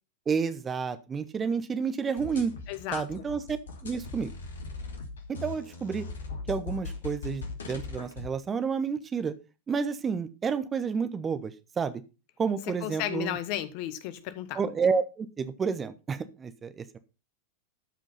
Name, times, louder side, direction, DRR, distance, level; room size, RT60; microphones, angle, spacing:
voice 1, 0.3-2.5 2.9-3.6 3.8-4.3 5.3-6.1 6.5-9.3 9.7-12.0 12.4-13.4 14.5-17.0, right 5 dB, 20° right, 0.9 m, -30 dB
sound 1, 2.2-8.3, left 3 dB, 65° left, 1.9 m, -39 dB
voice 2, 2.7-3.2 12.8-14.6, left 12 dB, 45° left, 1.2 m, -34 dB
13.0 x 5.1 x 5.5 m
figure-of-eight pair, 90°, 0 cm